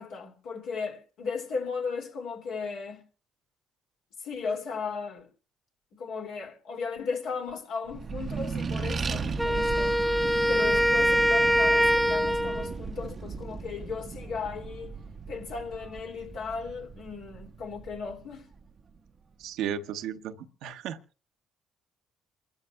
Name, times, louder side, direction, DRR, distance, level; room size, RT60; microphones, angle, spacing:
voice 1, 0.0-3.0 4.2-5.3 6.0-10.0 10.5-14.9 15.3-18.4, left 5 dB, 75° left, 2.7 m, -36 dB
Accelerating revving vroom, 7.9-18.8, right 4 dB, 45° right, 0.7 m, -36 dB
Wind instrument woodwind instrument, 9.4-12.7, equal, ahead, 0.7 m, -23 dB
voice 2, 19.4-21.0, right 9 dB, 75° right, 0.9 m, -34 dB
28.0 x 13.5 x 2.3 m
supercardioid pair, 60°, 0 cm